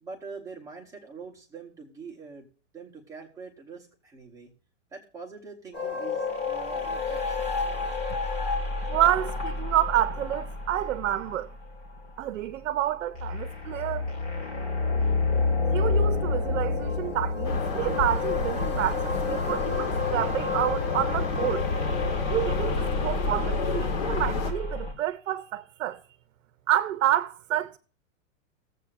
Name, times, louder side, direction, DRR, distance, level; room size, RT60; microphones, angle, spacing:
voice 1, 0.0-2.5 2.7-4.5 4.9-7.5, right 4 dB, 10° right, 1.0 m, -44 dB
sound 1, 5.7-24.9, left 4 dB, 20° left, 1.8 m, -30 dB
voice 2, 8.9-11.5 12.2-14.1 15.7-21.7 22.3-26.0 26.7-27.8, right 12 dB, 75° right, 0.7 m, -28 dB
sound 2, 17.4-24.5, left 4 dB, 40° left, 1.5 m, -29 dB
20.0 x 7.8 x 2.5 m
supercardioid pair, 165°, 38 cm